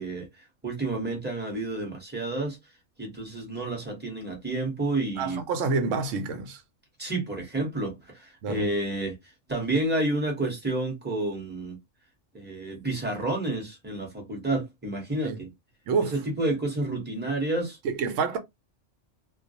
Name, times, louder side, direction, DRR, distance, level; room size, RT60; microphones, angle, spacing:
voice 1, 0.0-2.6 3.0-5.4 7.0-11.8 12.3-15.5 16.1-17.8, right 2 dB, 10° right, 0.8 m, -30 dB
voice 2, 5.2-6.6 8.4-8.6 15.2-15.4 15.9-16.1 17.8-18.4, right 4 dB, 80° right, 1.0 m, -27 dB
2.3 x 2.0 x 2.6 m
omnidirectional pair, 1.3 m